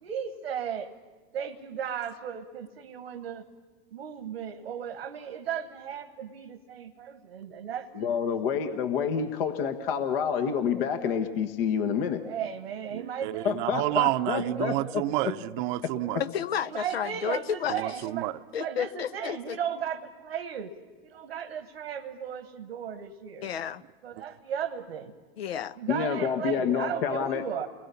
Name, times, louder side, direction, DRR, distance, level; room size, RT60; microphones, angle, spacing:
voice 1, 0.0-0.9 1.3-3.5 3.9-8.4 12.2-13.6 14.4-14.8 16.6-18.3 18.6-20.7 21.0-23.5 24.0-25.1 25.8-27.7, right 8 dB, 90° right, 1.3 m, -36 dB
voice 2, 7.9-12.2 13.4-15.0 15.8-15.9 25.9-27.4, left 7 dB, 70° left, 1.6 m, -28 dB
voice 3, 12.9-16.2 17.7-18.3, right 17 dB, 55° right, 0.7 m, -29 dB
voice 4, 16.2-17.8 18.5-19.6 23.4-23.8 25.4-25.8, left 8 dB, 85° left, 0.8 m, -31 dB
29.5 x 21.5 x 7.0 m
hypercardioid pair, 100°, 30 cm